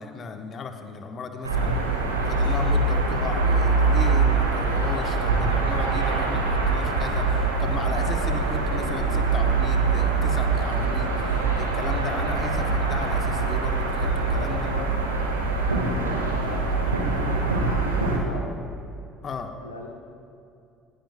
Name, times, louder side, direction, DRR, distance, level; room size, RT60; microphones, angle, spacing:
voice 1, 0.0-1.8 2.2-14.7 19.2-19.5, left 4 dB, 45° left, 5 dB, 1.3 m, -35 dB
sound 1, 1.4-18.2, right 3 dB, 90° right, 1.7 m, -23 dB
voice 2, 14.3-18.7 19.6-19.9, left 2 dB, 85° left, 1 dB, 1.2 m, -39 dB
20.0 x 18.5 x 2.3 m, 2.6 s
figure-of-eight pair, 60°, 0 cm